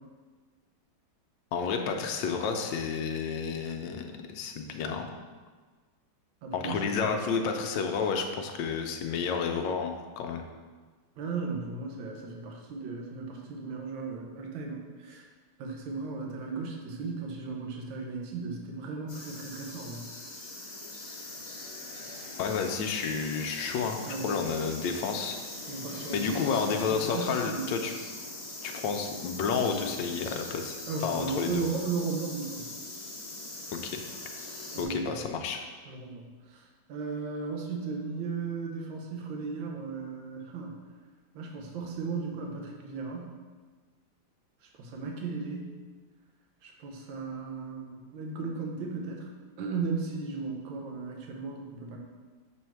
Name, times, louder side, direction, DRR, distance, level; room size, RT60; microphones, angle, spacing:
voice 1, 1.5-5.1 6.5-10.4 22.4-25.4 26.1-27.9 28.6-30.8 31.0-31.6 33.7-34.0 34.8-35.6, left 5 dB, 75° left, 4 dB, 1.1 m, -31 dB
voice 2, 6.4-7.0 11.2-15.3 15.6-20.1 24.1-24.4 25.7-27.7 30.9-32.7 34.7-35.2 35.9-40.7 41.3-43.3 44.8-45.7 46.6-49.3 49.6-52.0, right 4 dB, 75° right, 1 dB, 1.6 m, -36 dB
sound 1, 19.1-34.8, left 2 dB, 35° left, 0.7 m, -41 dB
6.2 x 3.4 x 4.5 m, 1.4 s
omnidirectional pair, 2.3 m